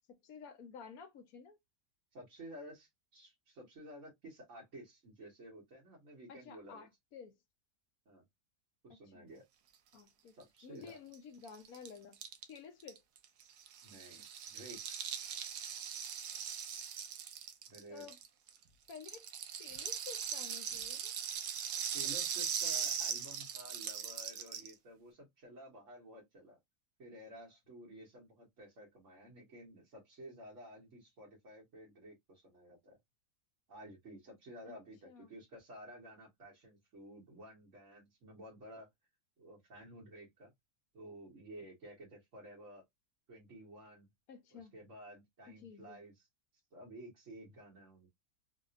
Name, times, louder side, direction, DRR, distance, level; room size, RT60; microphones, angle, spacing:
voice 1, 0.1-1.6 6.3-7.4 9.1-9.3 9.9-10.3 10.6-12.2 12.5-13.0 17.9-18.2 18.9-19.3 19.6-21.1 34.7-34.8 35.0-35.3 44.3-44.7 45.5-46.0, left 6 dB, 70° left, 1.2 m, -52 dB
voice 2, 2.1-6.9 8.0-8.2 8.8-9.4 10.3-11.0 13.8-14.8 17.7-18.1 21.9-26.6 27.0-33.0 33.7-38.9 39.4-40.5 40.9-42.8 43.3-44.1 44.5-46.3 46.5-48.1, right 1 dB, 50° right, 1.6 m, -53 dB
Rattle (instrument), 10.9-11.0 11.1-11.2 11.4-18.6 18.9-24.7, right 8 dB, 85° right, 1.2 m, -40 dB
3.4 x 2.7 x 2.5 m
omnidirectional pair, 1.7 m